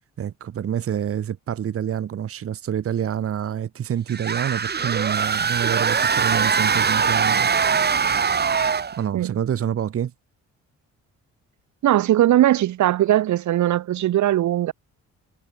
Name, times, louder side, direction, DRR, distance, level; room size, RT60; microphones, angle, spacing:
voice 1, 0.2-7.7 9.0-10.1, right 9 dB, 50° right, 1.1 m, -27 dB
sound 1, 4.1-9.0, right 6 dB, 35° right, 1.5 m, -22 dB
voice 2, 11.8-14.7, right 13 dB, 70° right, 1.2 m, -19 dB
cardioid pair, 90°, 30 cm